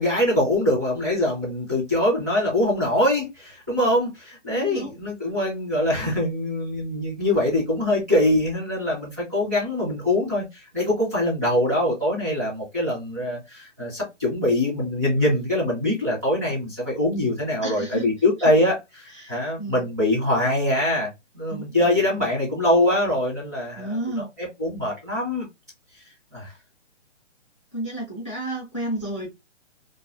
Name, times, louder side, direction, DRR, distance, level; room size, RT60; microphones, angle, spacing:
voice 1, 0.0-21.1 21.3-24.0 24.4-25.4 26.3-26.5, left 1 dB, 15° right, 0.6 m, -23 dB
voice 2, 4.5-5.0 17.6-18.1 18.4-18.5 19.1-19.9 21.5-21.9 23.7-24.3 27.7-29.3, right 1 dB, 25° left, 0.4 m, -32 dB
2.3 x 2.3 x 2.3 m
hypercardioid pair, 170°, 36 cm